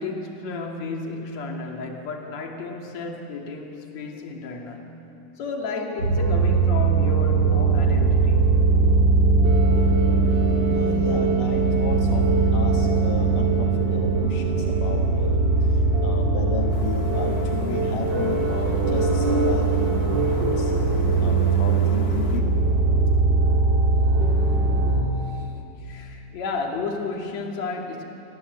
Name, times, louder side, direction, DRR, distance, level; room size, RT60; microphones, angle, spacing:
voice 1, 0.0-4.9 5.4-8.5 25.3-25.5 25.8-28.0, left 3 dB, 55° left, 2 dB, 3.5 m, -32 dB
sound 1, 6.0-25.0, right 3 dB, 35° right, 3.6 m, -20 dB
voice 2, 10.7-20.7 21.2-22.7, left 5 dB, 75° left, 2 dB, 3.0 m, -34 dB
sound 2, 16.7-22.4, left 3 dB, 35° left, 1.7 m, -38 dB
28.5 x 24.0 x 8.1 m, 2.8 s
omnidirectional pair, 3.9 m